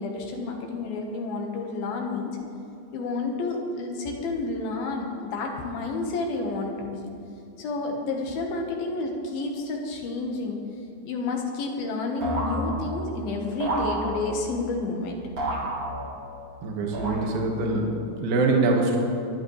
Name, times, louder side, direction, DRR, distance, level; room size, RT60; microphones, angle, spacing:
voice 1, 0.0-2.4 2.9-7.0 7.6-10.6 11.1-15.2, left 3 dB, 70° left, 1 dB, 3.0 m, -30 dB
sound 1, 12.2-13.2 13.6-14.5 15.4-16.4 16.9-17.6, right 1 dB, 45° right, 3.6 m, -30 dB
voice 2, 16.6-19.0, right 3 dB, 65° right, 0 dB, 3.2 m, -24 dB
23.5 x 11.5 x 3.2 m, 2.7 s
omnidirectional pair, 4.7 m